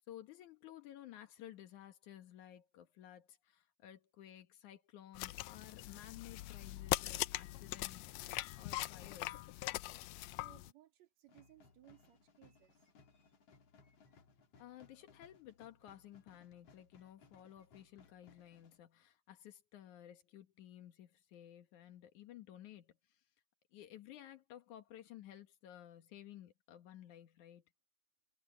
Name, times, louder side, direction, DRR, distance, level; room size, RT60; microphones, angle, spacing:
voice 1, 0.1-9.4 14.6-23.2 23.7-27.7, left 12 dB, 70° left, 2.8 m, -55 dB
sound 1, 5.2-10.7, left 17 dB, 90° left, 1.5 m, -41 dB
voice 2, 10.3-13.3, right 14 dB, 60° right, 3.4 m, -64 dB
sound 2, 11.3-18.8, left 4 dB, 50° left, 3.0 m, -66 dB
omnidirectional pair, 3.6 m